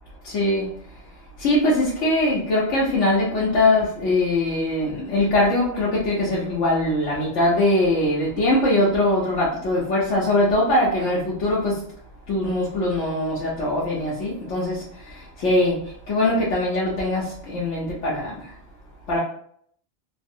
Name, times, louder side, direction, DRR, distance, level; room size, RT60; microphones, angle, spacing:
voice 1, 0.2-0.8 1.4-11.8 12.3-18.5 19.1-19.2, left 1 dB, 90° left, -7 dB, 1.1 m, -22 dB
3.3 x 2.0 x 2.6 m, 0.63 s
omnidirectional pair, 1.2 m